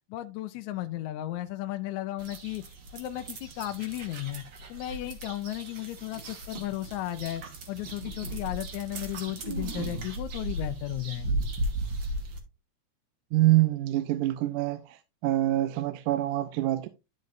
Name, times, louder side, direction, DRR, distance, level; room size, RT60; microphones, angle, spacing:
voice 1, 0.1-2.6 2.9-4.4 4.7-11.3, left 15 dB, 80° left, 1.8 m, -35 dB
sound 1, 2.2-12.4, right 1 dB, 50° right, 1.6 m, -36 dB
voice 2, 13.3-15.0 15.2-16.9, right 16 dB, 85° right, 2.1 m, -25 dB
12.0 x 5.3 x 2.5 m
omnidirectional pair, 3.6 m